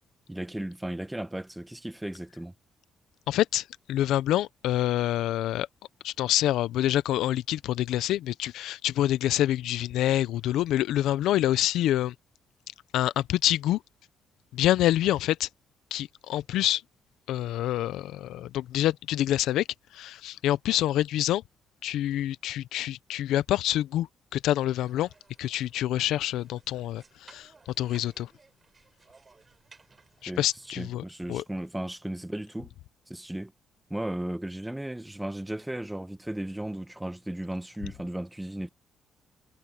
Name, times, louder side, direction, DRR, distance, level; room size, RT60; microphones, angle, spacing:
voice 1, 0.3-2.5 30.3-30.4 30.8-32.7 33.1-33.5 33.9-38.7, right 1 dB, 5° right, 0.9 m, -35 dB
voice 2, 3.3-5.7 6.0-12.1 12.9-13.8 14.5-15.5 15.9-16.8 17.3-19.7 19.9-21.4 21.8-25.1 25.4-28.3 30.2-31.0 31.3-31.4, left 13 dB, 85° left, 0.6 m, -27 dB
sound 1, 24.7-30.8, right 4 dB, 30° right, 5.3 m, -58 dB
cardioid pair, 90°, 0 cm